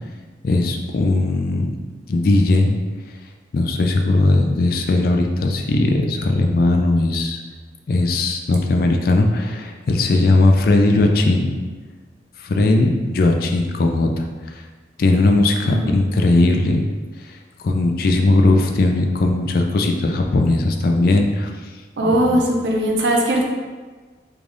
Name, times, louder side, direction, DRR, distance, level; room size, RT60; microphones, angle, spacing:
voice 1, 0.4-1.7 2.1-2.7 3.5-7.4 7.9-11.5 12.4-14.3 14.5-14.6 15.0-16.8 17.3-17.4 17.6-21.5 22.0-22.4, left 2 dB, 55° left, 3 dB, 0.4 m, -18 dB
voice 2, 15.6-16.0 22.0-23.4, right 1 dB, 75° right, 0 dB, 0.6 m, -19 dB
3.3 x 2.4 x 3.8 m, 1.4 s
head